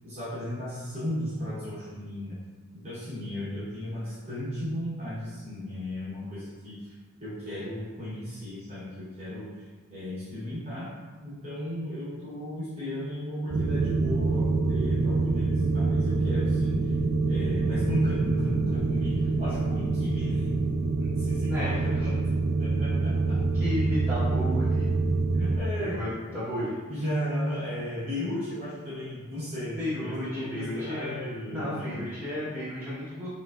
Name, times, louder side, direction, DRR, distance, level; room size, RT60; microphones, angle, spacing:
voice 1, 0.0-2.4 2.7-6.9 7.2-9.5 9.9-10.9 11.2-16.8 17.3-20.5 20.9-22.1 22.6-23.4 25.4-26.0 26.3-26.4 26.9-32.0, left 1 dB, 30° right, -12 dB, 1.0 m, -35 dB
sound 1, 13.5-25.6, right 3 dB, 60° right, 0.4 m, -26 dB
voice 2, 21.5-22.1 23.5-24.9 25.8-26.1 26.3-26.8 29.8-31.2 31.5-33.3, left 1 dB, 10° right, -12 dB, 1.2 m, -33 dB
4.9 x 2.6 x 2.4 m, 1.4 s
head